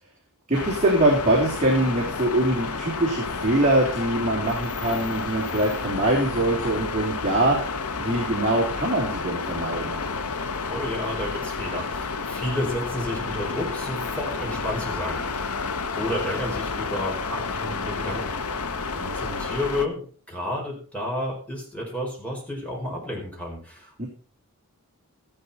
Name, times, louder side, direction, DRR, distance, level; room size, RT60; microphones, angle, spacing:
sound 1, 0.5-19.9, left 4 dB, 80° left, 1.1 m, -30 dB
voice 1, 0.5-10.0 18.9-19.4 24.0-24.1, right 1 dB, 30° right, -4 dB, 3.2 m, -23 dB
voice 2, 10.6-15.5 15.9-18.4 18.9-24.1, left 1 dB, 5° left, -2 dB, 4.9 m, -31 dB
14.0 x 11.0 x 4.2 m, 0.40 s
head